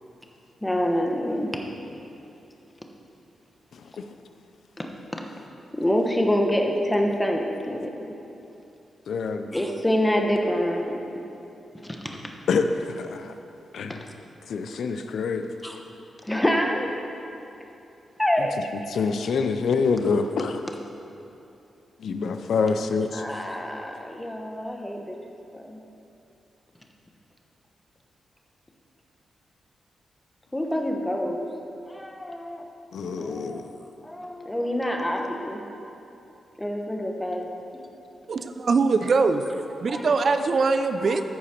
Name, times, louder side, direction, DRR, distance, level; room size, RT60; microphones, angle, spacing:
voice 1, 0.6-1.5 4.8-4.9 5.7-7.9 9.5-11.0 11.8-12.2 15.6-15.8 16.2-17.0 18.2-18.6 23.1-25.1 25.5-25.8 30.5-31.4 31.9-32.6 33.2-33.6 34.0-35.6 36.6-37.5 39.9-40.4 41.0-41.2, equal, 10° left, 1 dB, 1.0 m, -26 dB
voice 2, 3.7-4.1 9.1-9.5 12.5-13.3 13.7-14.0 14.5-15.5 18.4-18.5 18.9-20.6 22.0-23.2 32.9-33.6, left 5 dB, 75° left, 7 dB, 0.5 m, -26 dB
voice 3, 38.3-39.4 39.8-41.2, right 4 dB, 55° right, 9 dB, 0.4 m, -22 dB
14.0 x 5.0 x 4.4 m, 2.8 s
cardioid pair, 80°, 0 cm